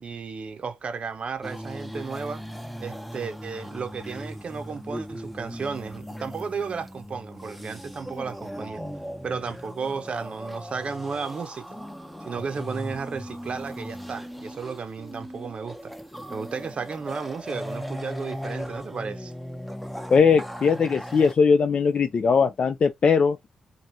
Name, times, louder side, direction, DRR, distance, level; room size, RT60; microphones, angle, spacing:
voice 1, 0.0-2.4 2.8-8.8 9.2-11.7 12.3-15.9 16.3-19.3, right 5 dB, 50° right, 0.6 m, -33 dB
sound 1, 1.4-21.3, equal, ahead, 0.6 m, -38 dB
voice 2, 20.1-23.5, left 5 dB, 50° left, 0.3 m, -20 dB
3.1 x 2.6 x 2.6 m
hypercardioid pair, 40°, 2 cm